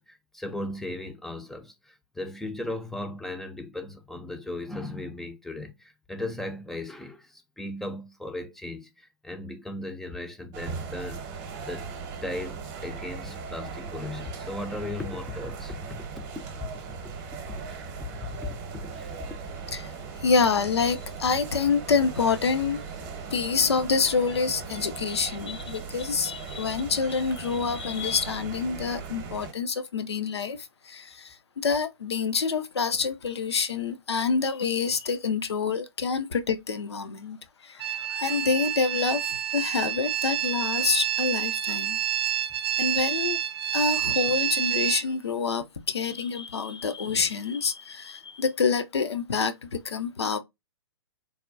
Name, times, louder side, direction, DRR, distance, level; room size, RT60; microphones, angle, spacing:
voice 1, 0.0-11.2 11.6-11.9 12.2-16.3 17.5-19.2, left 2 dB, ahead, 0.4 m, -37 dB
sound 1, 10.5-29.5, right 5 dB, 40° right, 0.8 m, -38 dB
voice 2, 19.7-22.8 23.3-39.2 39.5-42.0 42.8-43.4 43.7-50.4, left 5 dB, 80° left, 0.6 m, -27 dB
sound 2, 37.8-45.0, right 11 dB, 70° right, 0.4 m, -28 dB
3.4 x 2.2 x 2.4 m
figure-of-eight pair, 115°, 14 cm